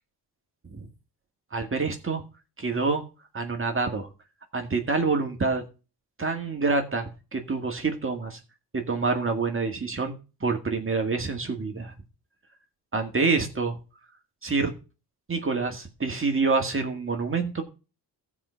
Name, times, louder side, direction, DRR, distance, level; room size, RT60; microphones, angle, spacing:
voice 1, 1.5-2.2 2.6-3.0 3.3-4.1 4.5-5.6 6.2-8.4 8.7-10.1 10.4-11.9 12.9-13.8 14.4-14.7 15.3-17.6, right 4 dB, 30° right, 4 dB, 1.9 m, -27 dB
14.5 x 4.9 x 5.7 m, 0.33 s
cardioid pair, 70°, 42 cm